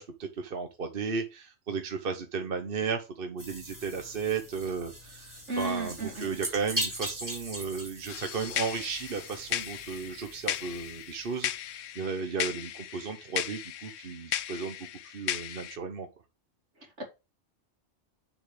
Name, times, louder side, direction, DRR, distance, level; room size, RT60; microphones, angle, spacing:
voice 1, 0.0-14.8 15.0-16.1, right 5 dB, 50° right, 6 dB, 1.1 m, -34 dB
sound 1, 3.4-11.5, right 1 dB, 15° right, 2.7 m, -40 dB
voice 2, 5.5-6.4 17.0-17.1, right 2 dB, 65° right, 1 dB, 3.2 m, -34 dB
sound 2, 8.1-15.8, left 11 dB, 80° left, 1.0 m, -36 dB
7.4 x 7.2 x 3.3 m, 0.27 s
omnidirectional pair, 1.3 m